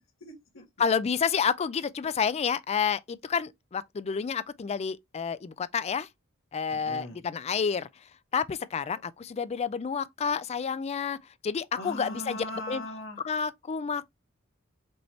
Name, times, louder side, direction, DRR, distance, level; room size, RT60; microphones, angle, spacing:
voice 1, 0.0-0.6 6.7-7.2 11.7-13.2, left 1 dB, 70° left, 1.5 m, -40 dB
voice 2, 0.8-6.1 6.5-7.9 8.3-11.2 11.4-12.8 13.2-14.1, left 6 dB, 30° left, 0.3 m, -29 dB
5.3 x 2.9 x 3.1 m
head